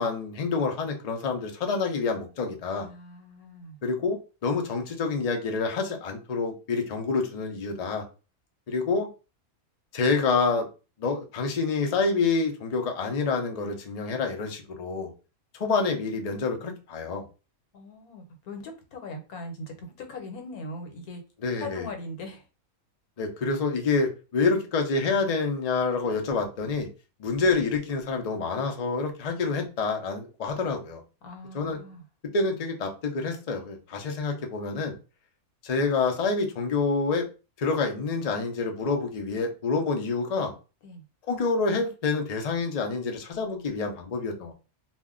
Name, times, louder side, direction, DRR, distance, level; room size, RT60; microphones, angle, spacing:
voice 1, 0.0-2.9 3.8-8.0 8.7-9.1 9.9-10.7 11.0-15.1 15.5-17.2 21.4-21.9 23.2-26.9 27.2-31.0 31.5-31.8 32.3-34.9 35.6-37.3 37.6-40.5 41.3-44.5, left 4 dB, 60° left, 3 dB, 0.4 m, -27 dB
voice 2, 2.8-3.8 17.7-21.2 21.6-22.4 31.2-32.0 40.8-41.0, left 2 dB, 80° left, 4 dB, 1.2 m, -40 dB
2.5 x 2.1 x 3.6 m, 0.31 s
omnidirectional pair, 1.5 m